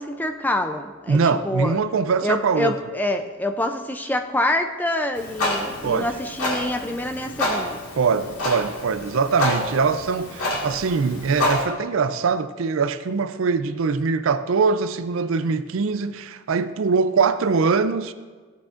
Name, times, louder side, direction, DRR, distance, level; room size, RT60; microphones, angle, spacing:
voice 1, 0.0-1.2 1.4-1.8 2.2-7.8, left 1 dB, 10° left, 0.4 m, -26 dB
voice 2, 1.1-2.7 5.8-6.1 8.0-18.1, right 5 dB, 65° right, 0.4 m, -22 dB
Clock, 5.1-11.6, left 1 dB, 90° left, 2.2 m, -28 dB
15.0 x 8.4 x 2.5 m
head